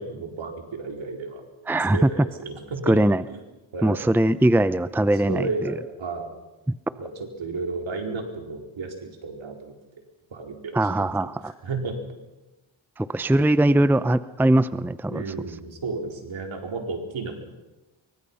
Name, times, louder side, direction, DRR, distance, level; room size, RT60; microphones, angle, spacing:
voice 1, 0.0-1.4 1.9-2.9 3.3-3.4 3.7-4.0 5.1-6.3 7.0-7.1 7.4-9.7 10.3-11.3 11.6-12.0 15.1-17.3, right 4 dB, 70° right, 2 dB, 4.6 m, -32 dB
voice 2, 1.7-2.1 2.9-3.2 3.8-5.7 10.7-11.5 13.0-15.2, right 1 dB, 5° right, 14 dB, 0.7 m, -21 dB
24.5 x 23.5 x 5.7 m, 1.0 s
cardioid pair, 65°, 49 cm